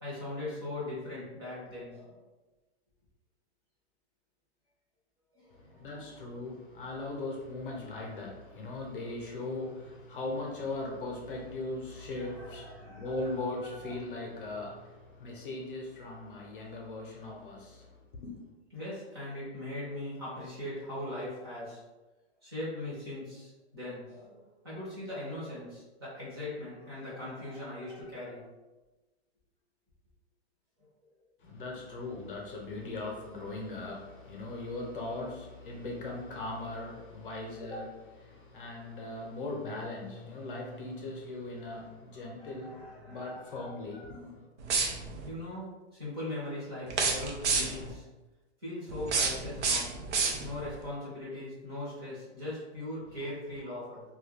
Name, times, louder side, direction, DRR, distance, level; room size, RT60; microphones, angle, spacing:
voice 1, 0.0-2.2 5.3-5.8 6.1-6.2 12.2-13.3 18.7-21.8 22.4-28.4 42.1-43.6 45.2-48.1 48.6-49.9 50.4-54.0, left 1 dB, 20° right, 0.6 m, -40 dB
voice 2, 5.5-18.4 31.4-44.5, left 2 dB, 50° left, 0.6 m, -39 dB
sound 1, 44.6-45.3 46.9-47.9 48.9-50.7, right 4 dB, 90° right, 0.6 m, -30 dB
2.3 x 2.2 x 3.3 m
hypercardioid pair, 180°, 34 cm